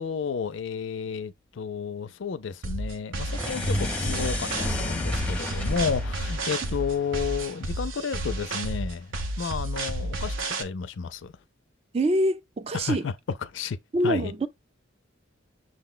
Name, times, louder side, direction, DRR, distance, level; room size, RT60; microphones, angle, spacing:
voice 1, 0.0-11.3 12.7-13.8 14.0-14.3, left 6 dB, 65° left, 0.4 m, -32 dB
sound 1, 2.6-10.6, right 1 dB, 75° right, 0.7 m, -31 dB
sound 2, 3.2-7.6, left 1 dB, 5° left, 0.7 m, -31 dB
voice 2, 11.9-13.1 13.9-14.5, right 1 dB, 30° right, 0.4 m, -25 dB
6.4 x 2.1 x 3.7 m
head